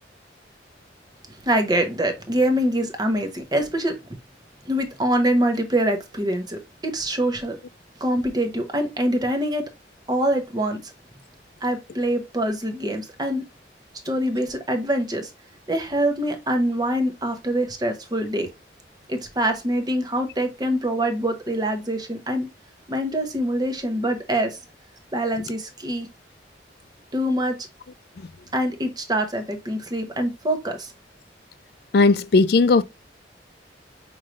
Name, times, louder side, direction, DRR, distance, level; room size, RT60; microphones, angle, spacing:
voice 1, 1.4-4.0 4.6-7.6 8.0-9.7 10.1-10.9 11.6-13.4 14.0-15.3 15.7-18.5 19.1-22.5 22.9-24.6 25.1-26.1 27.1-27.6 28.5-30.9, right 1 dB, 25° right, 0.9 m, -24 dB
voice 2, 31.9-32.8, left 3 dB, 60° left, 0.4 m, -16 dB
5.6 x 3.1 x 2.5 m
head